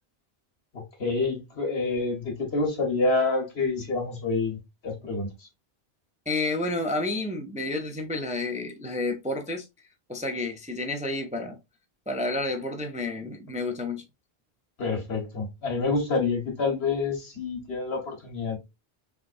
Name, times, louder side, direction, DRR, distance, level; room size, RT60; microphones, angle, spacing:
voice 1, 0.7-4.6 4.8-5.5 14.8-18.6, left 3 dB, 85° left, 1.6 m, -27 dB
voice 2, 6.3-9.7 10.1-11.6 12.1-14.0, left 2 dB, 10° right, 0.4 m, -30 dB
3.6 x 3.6 x 2.5 m
omnidirectional pair, 1.0 m